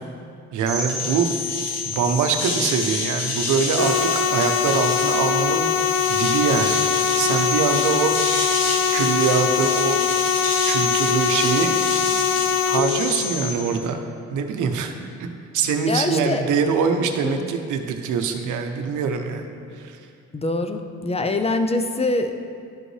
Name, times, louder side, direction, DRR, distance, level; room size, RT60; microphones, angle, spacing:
voice 1, 0.5-1.3 1.8-6.8 7.2-8.1 8.9-10.0 10.7-11.7 12.7-14.9 15.2-15.3 15.5-19.4 19.7-20.0, right 6 dB, 80° right, 5 dB, 0.7 m, -23 dB
sound 1, 0.7-13.5, left 4 dB, 90° left, 1.7 m, -27 dB
sound 2, 3.8-12.8, left 7 dB, 60° left, 0.7 m, -22 dB
voice 2, 15.9-16.5 17.2-17.4 20.3-22.3, left 2 dB, 20° left, 7 dB, 0.5 m, -24 dB
11.0 x 5.1 x 3.2 m, 2.4 s
cardioid pair, 90°, 30 cm